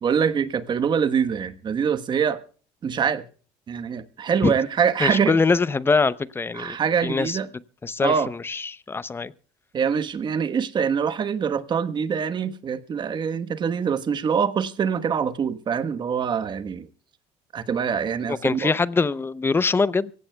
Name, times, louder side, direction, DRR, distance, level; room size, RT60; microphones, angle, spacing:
voice 1, 0.0-2.4 2.8-3.2 3.7-5.4 6.6-7.5 8.0-8.3 9.7-16.9 17.5-18.7, right 7 dB, 35° right, 1.2 m, -24 dB
voice 2, 5.0-6.8 7.0-7.4 7.8-9.3 18.3-20.1, left 4 dB, 20° left, 0.6 m, -23 dB
25.0 x 16.5 x 2.3 m
supercardioid pair, 95°, 13 cm